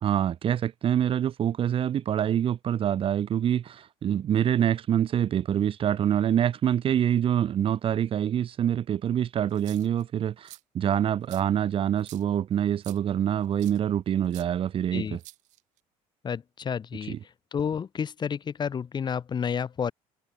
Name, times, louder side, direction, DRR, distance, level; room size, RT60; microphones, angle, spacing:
voice 1, 0.0-15.2 17.1-17.2, right 10 dB, 45° right, 1.5 m, -26 dB
sound 1, 9.5-10.0 10.4-10.6 11.3-11.4 12.0-12.2 12.8-13.0 13.6-13.8 14.3-14.5 15.2-15.8, right 18 dB, 70° right, 7.5 m, -48 dB
voice 2, 16.2-17.2 17.5-19.9, left 7 dB, 35° left, 8.0 m, -30 dB
cardioid pair, 110°, 13 cm